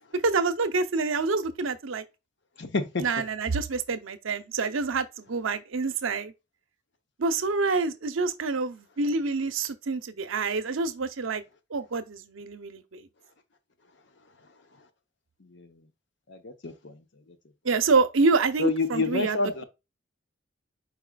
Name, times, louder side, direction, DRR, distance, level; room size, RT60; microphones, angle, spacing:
voice 1, 0.1-2.0 3.0-6.3 7.2-11.4 11.7-13.1 17.6-19.4, right 4 dB, 85° right, 0.7 m, -27 dB
voice 2, 2.6-3.0 15.5-15.7 16.3-16.9 18.6-19.6, left 3 dB, 60° left, 0.8 m, -28 dB
4.8 x 4.8 x 2.2 m
head